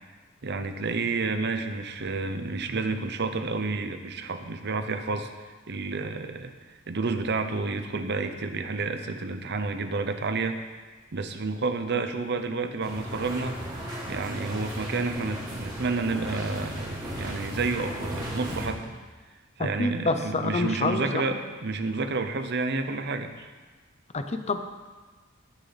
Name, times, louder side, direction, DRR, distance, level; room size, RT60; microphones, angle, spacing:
voice 1, 0.4-10.6 11.1-13.6 14.0-18.9 19.6-23.5, right 3 dB, 55° right, 8 dB, 0.8 m, -30 dB
Hospital corridor ambiance footsteps voices children, 12.8-18.7, equal, 20° right, 3.3 m, -35 dB
voice 2, 19.6-21.4 24.1-24.6, left 3 dB, 30° left, 8 dB, 0.7 m, -28 dB
19.0 x 6.7 x 4.2 m, 1.3 s
head